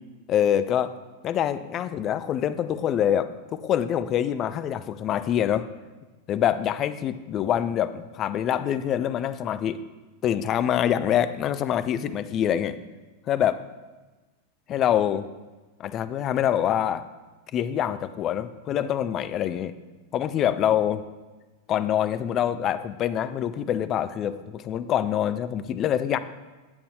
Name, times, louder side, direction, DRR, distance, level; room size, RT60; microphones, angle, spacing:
voice 1, 0.3-0.9 1.2-5.7 6.3-9.8 10.2-12.8 13.3-13.6 14.7-15.2 15.8-17.0 17.5-19.7 20.1-21.0 21.7-26.2, left 10 dB, 30° left, 12 dB, 0.4 m, -25 dB
8.9 x 8.5 x 3.2 m, 1.2 s
figure-of-eight pair, 90°, 0 cm